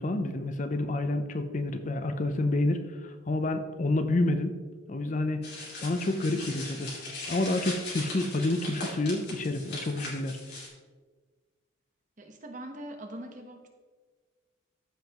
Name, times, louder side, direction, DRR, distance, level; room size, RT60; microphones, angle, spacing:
voice 1, 0.0-4.5 4.9-5.5 5.8-6.9 7.3-10.4, left 2 dB, 40° left, 8 dB, 0.5 m, -29 dB
sound 1, 5.4-10.7, left 2 dB, 55° left, 2.8 m, -39 dB
voice 2, 12.2-13.7, right 1 dB, 40° right, 3 dB, 1.1 m, -42 dB
14.0 x 5.6 x 3.0 m, 1.4 s
head